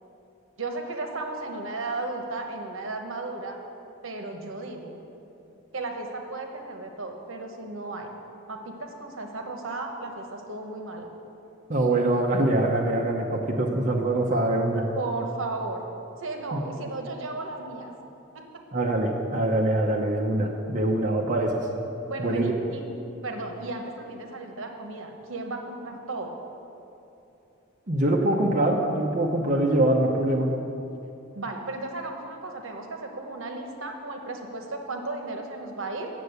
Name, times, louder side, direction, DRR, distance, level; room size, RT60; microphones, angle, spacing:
voice 1, 0.6-3.6 4.0-5.0 5.7-8.1 8.5-11.1 14.9-15.8 16.2-17.9 18.3-18.4 22.1-22.8 23.2-26.3 31.3-36.1, right 2 dB, 70° right, 3 dB, 1.1 m, -35 dB
voice 2, 11.7-14.9 16.5-16.6 18.7-21.7 22.2-22.5 27.9-30.5, right 1 dB, 35° right, -1 dB, 0.7 m, -24 dB
8.3 x 6.8 x 8.1 m, 2.8 s
head